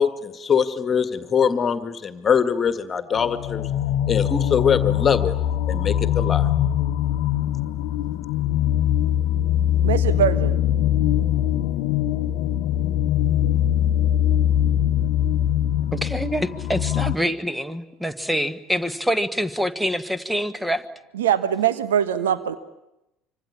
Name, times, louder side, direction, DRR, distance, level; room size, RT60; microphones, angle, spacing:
voice 1, 0.0-3.7 4.1-5.3 5.7-6.5, left 7 dB, 30° left, 11 dB, 1.9 m, -22 dB
sound 1, 3.2-17.2, left 11 dB, 55° left, 0.9 m, -22 dB
voice 2, 9.8-10.6 21.1-22.6, right 9 dB, 70° right, 13 dB, 1.3 m, -22 dB
voice 3, 15.9-20.9, equal, 5° right, 13 dB, 1.7 m, -25 dB
25.5 x 25.5 x 8.7 m, 0.88 s
figure-of-eight pair, 65°, 0 cm